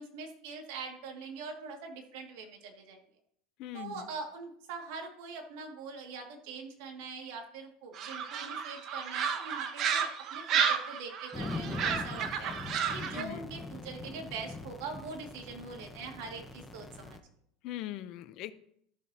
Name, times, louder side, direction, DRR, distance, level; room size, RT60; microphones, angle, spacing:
voice 1, 0.0-3.0 3.7-12.5 12.9-17.2, right 4 dB, 75° right, 2 dB, 2.3 m, -43 dB
voice 2, 3.6-4.1 13.1-13.5 17.6-18.5, left 14 dB, 60° left, 13 dB, 0.7 m, -40 dB
sound 1, 7.9-13.2, right 7 dB, 50° right, 1.0 m, -32 dB
sound 2, 11.3-17.2, left 2 dB, 15° left, 1.0 m, -42 dB
13.5 x 7.2 x 2.9 m, 0.68 s
supercardioid pair, 115°, 0 cm